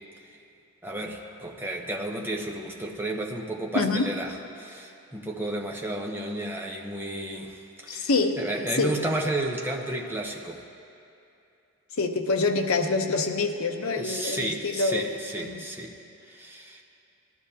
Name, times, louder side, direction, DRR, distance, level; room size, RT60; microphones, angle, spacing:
voice 1, 0.8-7.6 7.8-8.1 8.4-10.6 13.9-15.9 16.2-16.8, right 1 dB, 10° right, 0 dB, 0.8 m, -32 dB
voice 2, 3.7-4.1 7.9-8.4 8.8-8.9 12.0-15.0 15.4-15.6, left 3 dB, 70° left, 5 dB, 0.7 m, -26 dB
18.5 x 12.0 x 2.8 m, 2.6 s
head